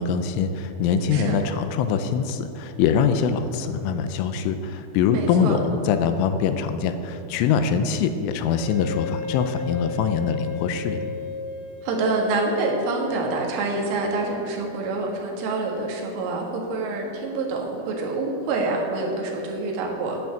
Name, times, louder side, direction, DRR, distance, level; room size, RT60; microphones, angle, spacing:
voice 1, 0.0-11.1, left 6 dB, 80° left, 9 dB, 3.0 m, -23 dB
voice 2, 5.1-5.6 11.8-20.2, right 3 dB, 75° right, 0 dB, 4.1 m, -26 dB
Wind instrument woodwind instrument, 8.5-13.6, left 5 dB, 60° left, 2.2 m, -34 dB
12.0 x 6.1 x 8.6 m, 2.7 s
omnidirectional pair, 5.8 m